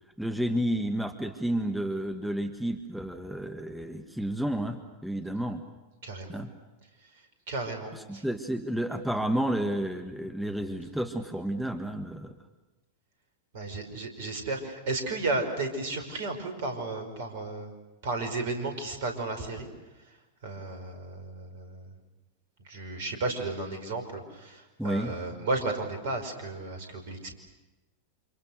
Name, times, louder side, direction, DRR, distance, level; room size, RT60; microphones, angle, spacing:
voice 1, 0.2-5.7 6.3-6.5 7.9-12.3 24.8-25.2, right 1 dB, ahead, 5 dB, 1.6 m, -31 dB
voice 2, 6.0-6.4 7.5-8.3 13.5-17.7 18.0-19.7 20.4-21.9 22.6-27.4, right 2 dB, 55° right, 6 dB, 5.4 m, -33 dB
29.5 x 27.0 x 6.6 m, 1.1 s
figure-of-eight pair, 90°, 0 cm